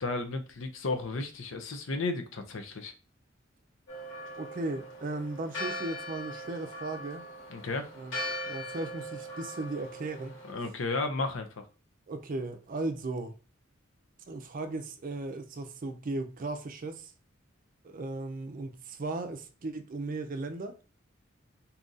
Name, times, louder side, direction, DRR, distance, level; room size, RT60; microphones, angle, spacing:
voice 1, 0.0-2.9 7.5-7.9 10.5-11.6, left 3 dB, 70° left, 0.6 m, -33 dB
Church bell, 3.9-10.5, equal, 90° left, 1.6 m, -40 dB
voice 2, 4.4-7.3 7.9-8.2 8.5-10.3 12.1-13.3 14.3-17.1 17.8-20.8, right 2 dB, 45° right, 0.4 m, -36 dB
2.8 x 2.5 x 3.9 m
head